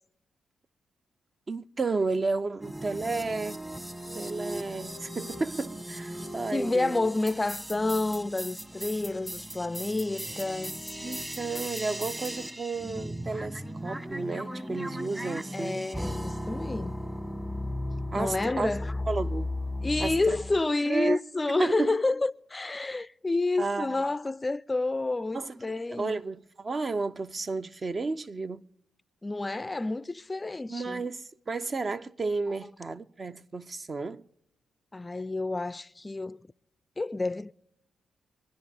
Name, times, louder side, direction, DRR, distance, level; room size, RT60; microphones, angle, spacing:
voice 1, 1.5-3.6 4.1-7.0 11.0-15.8 18.1-18.7 19.1-19.5 20.0-20.4 20.9-21.2 21.6-21.9 23.6-24.0 25.3-25.6 25.9-28.6 30.7-34.2, right 3 dB, 45° right, 0.6 m, -32 dB
sound 1, 2.6-20.6, equal, 15° right, 1.1 m, -37 dB
voice 2, 6.5-11.0 15.5-16.9 18.1-19.0 19.8-26.1 29.2-31.1 34.9-36.4 37.0-37.5, left 2 dB, 25° left, 0.4 m, -29 dB
25.5 x 10.0 x 3.4 m
supercardioid pair, 50°, 0 cm